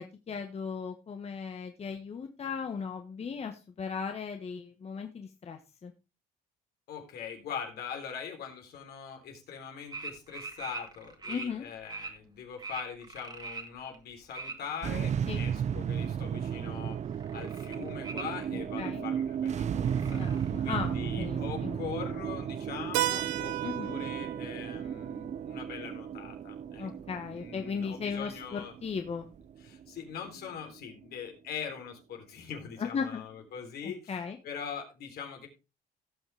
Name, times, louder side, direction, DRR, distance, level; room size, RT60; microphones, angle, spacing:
voice 1, 0.0-5.9 11.3-11.7 15.3-15.5 18.8-19.0 20.1-21.8 23.6-23.9 26.8-29.3 32.8-33.2 34.1-34.4, left 6 dB, 35° left, 5 dB, 1.3 m, -37 dB
voice 2, 6.9-17.0 17.3-28.7 29.6-35.5, left 7 dB, 70° left, 3 dB, 3.5 m, -42 dB
sound 1, 9.9-11.5 11.8-12.1 12.6-14.5 14.9-16.0 16.3-16.7 17.0-18.2 18.7-18.8 19.1-19.2 19.5-20.8 21.0-21.1 21.3-21.4 22.1-22.2 22.6-22.7 23.1-23.2, right 3 dB, 25° right, 2.2 m, -42 dB
sound 2, 14.8-31.2, right 8 dB, 45° right, 0.7 m, -34 dB
Keyboard (musical), 22.9-27.4, right 15 dB, 85° right, 0.8 m, -36 dB
17.0 x 6.4 x 3.4 m, 0.28 s
cardioid pair, 95°, 17 cm